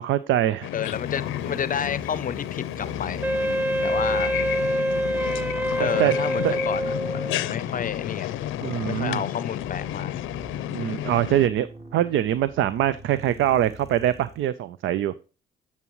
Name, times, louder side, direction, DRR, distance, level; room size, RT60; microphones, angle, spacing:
voice 1, 0.0-0.7 6.0-6.2 6.4-6.5 8.6-9.2 10.7-15.1, right 12 dB, 75° right, 0.5 m, -23 dB
sound 1, 0.6-11.5, left 13 dB, 90° left, 0.6 m, -31 dB
voice 2, 0.7-3.3 3.8-4.3 5.8-8.4 8.9-10.2, left 8 dB, 45° left, 0.5 m, -30 dB
sound 2, 0.8-14.5, right 2 dB, 30° right, 2.3 m, -43 dB
Wind instrument woodwind instrument, 3.2-7.5, right 1 dB, 10° right, 0.4 m, -26 dB
11.0 x 7.3 x 3.0 m
cardioid pair, 90°, 20 cm